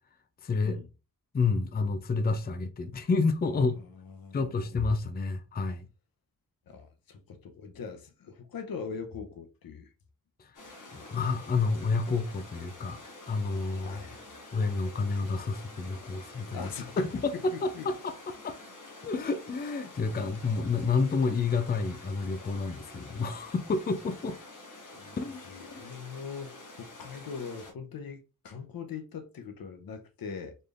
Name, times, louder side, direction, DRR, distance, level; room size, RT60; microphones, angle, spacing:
voice 1, 0.4-0.8 1.3-3.7 4.3-5.8 10.4-10.5 10.9-13.0 13.3-14.0 14.5-16.7 17.0-18.6 19.0-24.4 25.2-25.8, left 4 dB, 25° left, 0.5 m, -29 dB
voice 2, 3.5-4.6 6.7-9.9 13.8-14.3 16.5-17.1 17.5-17.9 25.0-25.1 25.4-30.5, left 6 dB, 75° left, 0.9 m, -41 dB
sound 1, 10.5-27.7, left 2 dB, 60° left, 1.5 m, -48 dB
4.1 x 3.3 x 2.5 m
wide cardioid pair, 105°, 35 cm